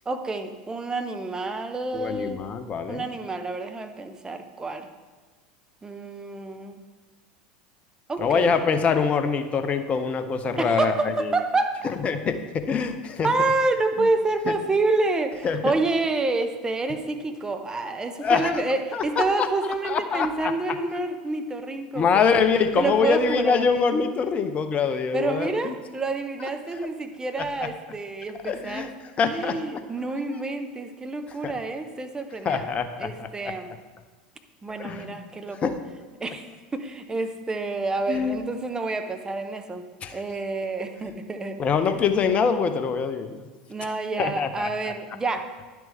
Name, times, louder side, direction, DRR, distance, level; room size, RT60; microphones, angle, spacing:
voice 1, 0.1-2.4 2.9-4.9 5.8-6.9 8.1-8.5 10.6-11.8 13.2-22.4 22.8-23.6 25.1-28.9 29.2-32.7 33.0-33.7 34.6-35.7 36.2-36.4 36.7-39.9 40.1-41.6 43.7-45.5, right 3 dB, 15° right, 7 dB, 0.8 m, -28 dB
voice 2, 1.9-3.1 8.2-11.3 12.0-13.3 15.4-15.7 18.2-18.5 18.9-19.5 19.8-20.5 21.9-25.7 27.6-27.7 28.4-28.9 29.2-29.6 31.4-31.5 32.4-33.5 34.8-35.2 35.6-35.8 38.1-38.5 40.0-40.2 41.0-41.2 41.6-43.4 43.8-43.9 44.2-44.7, left 5 dB, 30° left, 9 dB, 0.7 m, -24 dB
10.5 x 6.1 x 3.4 m, 1.3 s
figure-of-eight pair, 80°, 4 cm